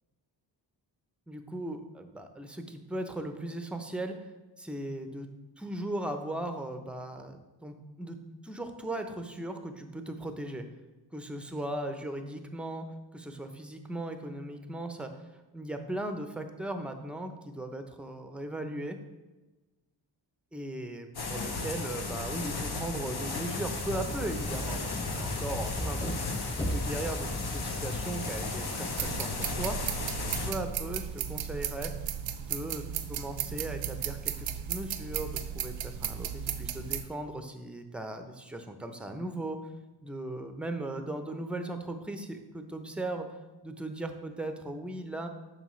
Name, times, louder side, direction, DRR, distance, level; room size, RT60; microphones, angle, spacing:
voice 1, 1.3-4.1 4.6-5.3 5.6-8.2 8.4-10.6 11.1-12.9 13.1-15.1 15.5-19.0 20.5-26.2 26.6-29.8 30.2-31.0 31.3-31.9 32.4-39.6 40.0-43.3 43.6-45.3, right 1 dB, ahead, 6 dB, 0.6 m, -38 dB
sound 1, 21.1-30.5, left 3 dB, 55° left, 1.0 m, -35 dB
sound 2, 23.7-29.5, equal, 15° left, 1.0 m, -38 dB
sound 3, 28.9-37.0, right 9 dB, 80° right, 0.6 m, -35 dB
7.5 x 5.2 x 3.1 m, 1.2 s
cardioid pair, 65°, 45 cm